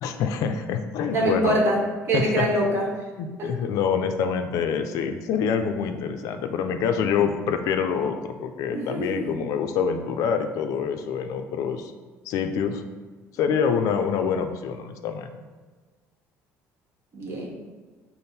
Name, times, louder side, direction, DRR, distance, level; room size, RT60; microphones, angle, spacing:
voice 1, 0.0-1.6 2.1-2.5 3.2-11.9 12.3-12.8 13.4-15.4, left 6 dB, 70° left, 7 dB, 0.4 m, -26 dB
voice 2, 1.1-1.8 2.1-2.8 3.4-3.5 8.7-9.4 17.1-17.5, right 1 dB, 45° right, -1 dB, 1.0 m, -24 dB
5.2 x 2.0 x 4.2 m, 1.4 s
cardioid pair, 110°, 6 cm